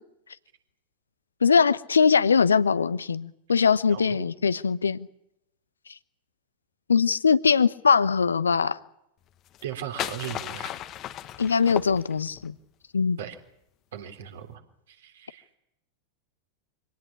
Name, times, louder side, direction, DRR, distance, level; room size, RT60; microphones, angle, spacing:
voice 1, 1.4-5.1 6.9-8.8 11.4-12.5 12.9-13.2, left 6 dB, 75° left, 1.0 m, -21 dB
voice 2, 3.9-4.2 9.6-10.7 13.2-13.4 13.9-14.6 14.9-15.5, right 10 dB, 60° right, 3.7 m, -37 dB
sound 1, 9.5-12.5, left 12 dB, 35° left, 1.4 m, -35 dB
25.5 x 18.0 x 8.9 m
figure-of-eight pair, 90°, 0 cm